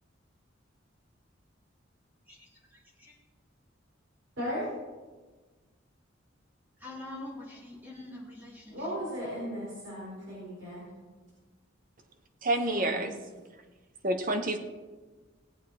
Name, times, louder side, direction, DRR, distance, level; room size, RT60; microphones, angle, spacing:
voice 1, 2.3-3.1 6.8-9.0, left 2 dB, 10° right, 3.0 m, -45 dB
voice 2, 4.4-4.7 8.7-10.9 12.6-13.1, equal, 65° right, 4.6 m, -36 dB
voice 3, 12.4-13.1 14.0-14.6, right 1 dB, 45° right, 1.1 m, -28 dB
18.5 x 8.3 x 4.3 m
head